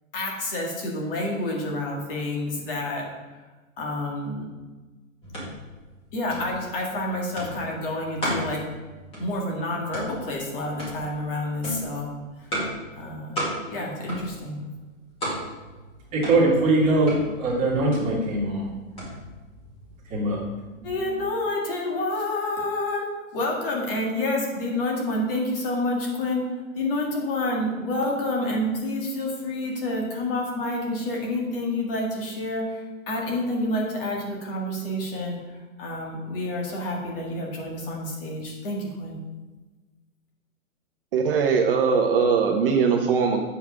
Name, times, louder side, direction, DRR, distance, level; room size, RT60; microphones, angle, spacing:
voice 1, 0.1-3.1 3.8-4.5 6.1-8.7 9.2-12.1 12.4-12.5 13.0-14.6 20.8-26.5 26.8-39.2, left 1 dB, 40° left, -1 dB, 2.0 m, -28 dB
sound 1, 5.2-20.4, equal, 15° left, 2.0 m, -35 dB
voice 2, 16.1-18.7 20.1-20.4 20.7-20.9, right 2 dB, 20° right, -5 dB, 1.9 m, -22 dB
voice 3, 41.1-43.4, right 5 dB, 45° right, 2 dB, 0.8 m, -21 dB
8.1 x 5.6 x 4.9 m, 1.2 s
hypercardioid pair, 160°, 41 cm